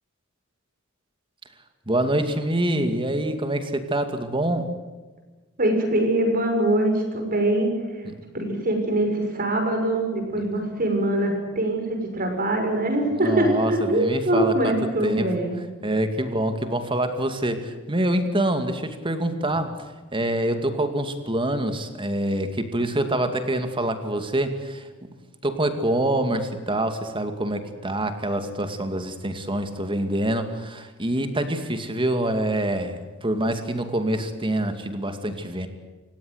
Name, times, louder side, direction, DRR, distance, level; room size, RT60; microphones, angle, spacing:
voice 1, 1.9-4.7 8.0-8.1 13.1-14.7 15.0-15.3 15.8-24.9 25.4-35.7, right 1 dB, 25° right, 8 dB, 2.4 m, -25 dB
voice 2, 5.6-7.7 8.3-15.6, right 1 dB, 45° right, 4 dB, 6.4 m, -23 dB
29.0 x 17.5 x 8.1 m, 1.3 s
head